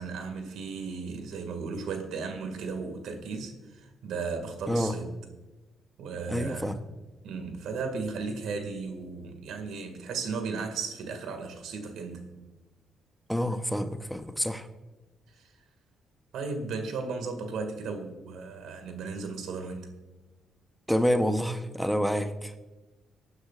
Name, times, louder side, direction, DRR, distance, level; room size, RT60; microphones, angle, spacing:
voice 1, 0.0-5.2 6.0-6.7 7.2-12.3 15.3-15.4 16.3-19.9, right 4 dB, 80° right, 2.0 m, -35 dB
voice 2, 6.3-6.8 13.3-14.7 20.9-22.5, equal, ahead, 0.8 m, -28 dB
19.5 x 9.7 x 2.5 m
cardioid pair, 90°, 0 cm